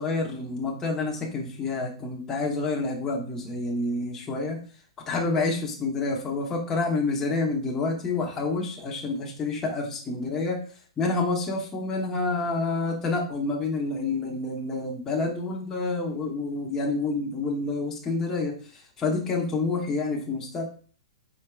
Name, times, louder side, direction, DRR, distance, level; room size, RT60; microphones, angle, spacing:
voice 1, 0.0-4.6 5.1-10.6 11.0-18.5 19.0-20.6, left 3 dB, 15° left, -2 dB, 0.9 m, -28 dB
4.4 x 4.2 x 2.3 m, 0.42 s
hypercardioid pair, 160°, 3 cm